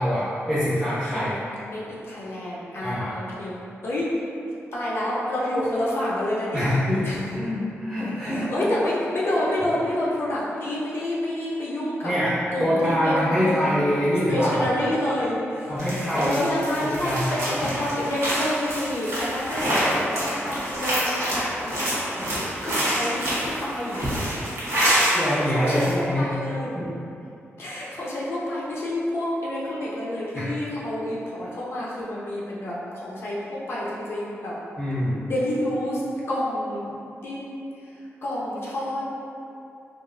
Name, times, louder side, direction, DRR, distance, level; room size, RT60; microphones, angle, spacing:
voice 1, 0.0-1.3 2.8-3.2 6.5-8.5 12.0-12.3 12.6-14.7 15.7-16.4 17.0-17.7 25.1-26.3 26.7-26.9 30.3-30.5 34.8-35.2, equal, 10° right, -12 dB, 0.6 m, -24 dB
voice 2, 1.1-4.1 4.7-6.7 7.0-7.2 8.3-12.1 12.5-13.8 14.3-15.7 16.1-24.2 25.2-26.8 27.6-34.6 35.3-36.9 37.2-37.7 37.9-39.0, left 1 dB, 55° left, -6 dB, 0.4 m, -28 dB
sound 1, 15.8-25.2 25.5-25.9, equal, 85° right, 0.9 m, -26 dB
2.8 x 2.3 x 2.5 m, 2.7 s
wide cardioid pair, 160°, 5 cm